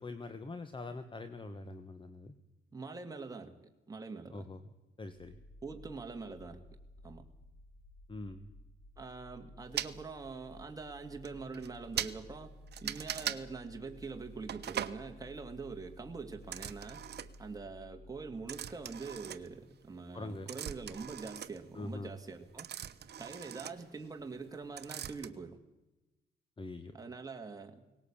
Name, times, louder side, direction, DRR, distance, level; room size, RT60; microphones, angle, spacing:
voice 1, 0.0-2.3 4.3-4.6 5.0-5.4 8.1-8.5 20.1-20.5 21.7-22.1 26.6-27.0, left 2 dB, 25° left, 10 dB, 1.4 m, -43 dB
voice 2, 2.7-4.5 5.6-6.6 7.0-7.2 9.0-17.0 17.4-22.7 23.2-25.6 26.9-27.8, right 4 dB, 20° right, 4 dB, 2.1 m, -44 dB
sound 1, 5.1-19.8, left 1 dB, 75° left, 3.9 m, -55 dB
sound 2, 9.8-9.9 10.8-10.9 11.2-11.3 11.5-11.7 12.0-12.1 12.7-13.4 14.5-15.0 16.4-17.5 18.5-19.9 20.2-24.5 24.8-25.3, right 9 dB, 55° right, 1.1 m, -40 dB
18.5 x 17.5 x 8.7 m, 1.0 s
cardioid pair, 90°, 20 cm